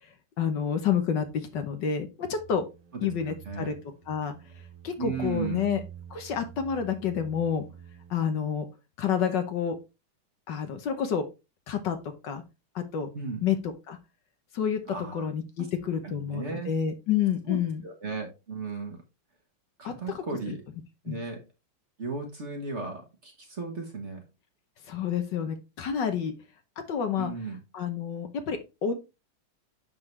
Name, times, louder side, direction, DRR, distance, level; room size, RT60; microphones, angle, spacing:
voice 1, 0.4-2.6 3.0-3.7 4.1-4.3 4.8-5.8 6.1-7.6 8.1-8.6 9.0-9.8 10.5-11.2 11.7-12.0 12.2-12.4 12.7-13.1 13.4-14.0 14.5-14.8 15.1-17.8 19.8-20.2 21.1-21.2 24.9-26.3 26.9-27.3 27.7-28.9, left 7 dB, 65° left, 7 dB, 1.5 m, -29 dB
sound 1, 2.3-8.3, right 9 dB, 90° right, 2.3 m, -48 dB
voice 2, 3.0-3.7 5.0-5.6 13.1-13.4 14.9-15.3 16.0-16.7 17.5-19.0 19.8-20.6 21.0-21.4 22.0-24.2 27.2-27.6, right 4 dB, 40° right, 3 dB, 1.5 m, -35 dB
11.0 x 3.8 x 3.2 m, 0.27 s
omnidirectional pair, 2.2 m